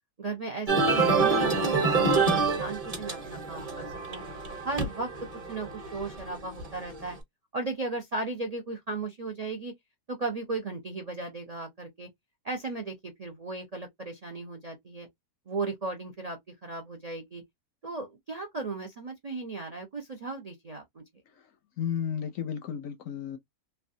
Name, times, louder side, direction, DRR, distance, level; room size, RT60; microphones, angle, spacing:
voice 1, 0.2-4.2 4.6-5.1 5.5-7.2 7.5-9.7 10.1-12.1 12.4-15.1 15.5-17.4 17.8-21.0, right 3 dB, 60° right, 0.4 m, -36 dB
sound 1, 0.7-7.0, right 4 dB, 25° right, 0.9 m, -27 dB
voice 2, 21.8-23.4, left 8 dB, 70° left, 0.8 m, -33 dB
3.4 x 2.2 x 2.6 m
omnidirectional pair, 1.7 m